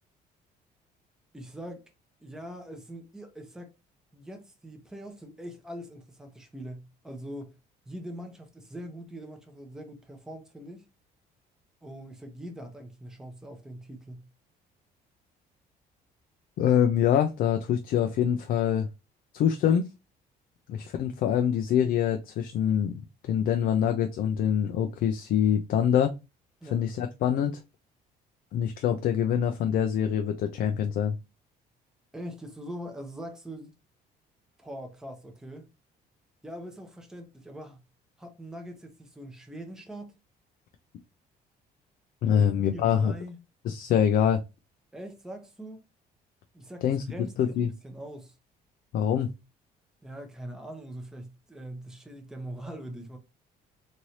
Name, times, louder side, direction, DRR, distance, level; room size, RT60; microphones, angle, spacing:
voice 1, 1.3-1.9 2.2-3.7 4.1-7.5 7.9-10.9 11.8-14.3 26.6-26.8 32.1-33.7 34.6-35.7 36.4-37.8 38.2-40.1 42.3-43.4 44.9-45.8 46.5-48.3 50.0-53.2, equal, 5° right, 0.7 m, -42 dB
voice 2, 16.6-18.9 19.3-19.9 20.7-26.1 26.7-27.6 28.5-31.2 42.2-43.1 43.6-44.4 46.8-47.0 47.4-47.7 48.9-49.3, left 9 dB, 60° left, 0.4 m, -25 dB
3.1 x 2.6 x 2.8 m
cardioid pair, 110°, 17 cm